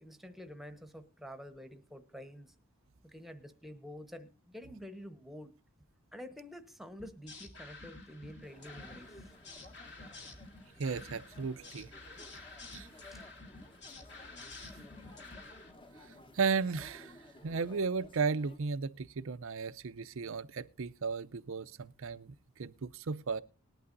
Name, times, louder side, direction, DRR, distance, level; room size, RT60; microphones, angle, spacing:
voice 1, 0.0-2.5 3.0-5.5 6.1-9.2 13.1-13.2, equal, ahead, 1.1 m, -48 dB
sound 1, 7.0-15.7, left 3 dB, 55° left, 2.4 m, -50 dB
sound 2, 8.4-18.6, left 1 dB, 25° left, 1.1 m, -56 dB
voice 2, 10.8-11.9 12.7-12.9 16.0-17.2 17.4-23.4, right 5 dB, 65° right, 0.6 m, -35 dB
19.5 x 11.5 x 2.6 m
head